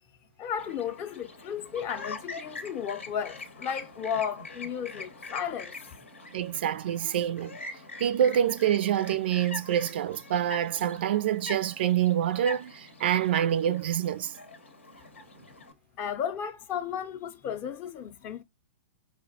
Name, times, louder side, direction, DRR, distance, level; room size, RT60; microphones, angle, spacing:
voice 1, 0.4-5.7 16.0-18.4, left 8 dB, 30° left, 0.5 m, -34 dB
Chirp tweet, 0.6-15.7, left 3 dB, 80° left, 0.8 m, -44 dB
voice 2, 6.3-7.6 8.0-14.3, right 10 dB, 55° right, 0.3 m, -26 dB
4.9 x 2.1 x 2.7 m
figure-of-eight pair, 105°, 7 cm